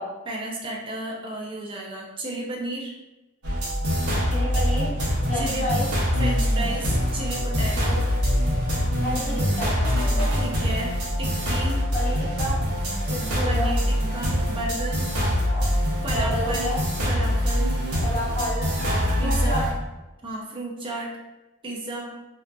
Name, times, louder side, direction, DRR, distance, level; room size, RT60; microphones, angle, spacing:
voice 1, 0.3-3.0 5.3-5.7 6.2-8.1 10.3-11.8 13.5-15.1 16.0-17.8 18.8-19.7 20.2-21.2 21.6-22.2, right 1 dB, 25° right, -1 dB, 0.4 m, -33 dB
sound 1, 3.4-19.7, equal, 90° right, 0.7 m, -24 dB
voice 2, 4.2-4.9 5.3-5.9 9.0-10.3 11.9-12.6 13.1-13.7 15.2-15.6 16.1-16.8 18.0-18.6 19.2-19.7, equal, 35° left, -7 dB, 0.7 m, -30 dB
2.5 x 2.3 x 2.2 m, 1.1 s
head